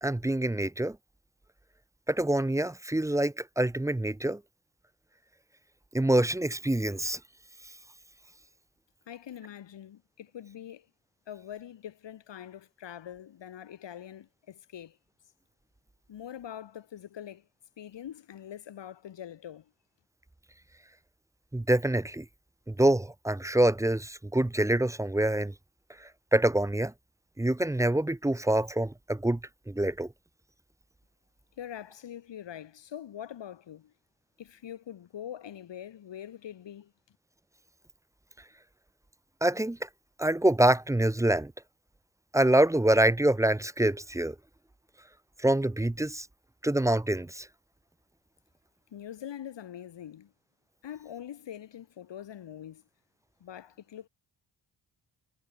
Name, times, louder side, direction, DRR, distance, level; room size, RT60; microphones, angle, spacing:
voice 1, 0.0-1.0 2.1-4.4 5.9-7.2 21.5-22.2 22.7-25.5 26.0-26.9 27.4-29.4 29.7-30.1 39.4-39.9 40.2-41.5 42.3-44.4 45.4-46.3 46.6-47.5, right 1 dB, 5° right, 0.7 m, -26 dB
voice 2, 9.1-10.9 11.3-15.0 16.1-17.5 17.8-19.7 31.6-33.9 34.4-36.9 48.9-50.3 50.8-52.8 53.4-54.1, left 10 dB, 80° left, 6.0 m, -43 dB
cardioid pair, 100°, 43 cm